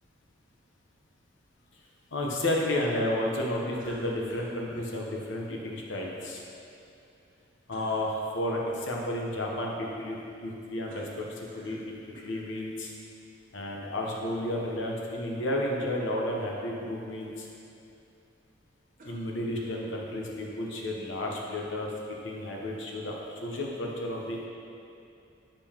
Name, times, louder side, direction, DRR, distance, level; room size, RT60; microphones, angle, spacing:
voice 1, 2.1-6.4 7.7-10.2 10.4-12.9 13.5-17.5 19.0-24.5, left 1 dB, 70° left, -1 dB, 0.9 m, -32 dB
sound 1, 3.8-5.0 7.7-8.1 10.9-11.9 12.1-12.5 13.3-13.4 19.0-19.9, right 1 dB, 45° right, 0.9 m, -51 dB
6.8 x 5.2 x 2.9 m, 2.6 s
head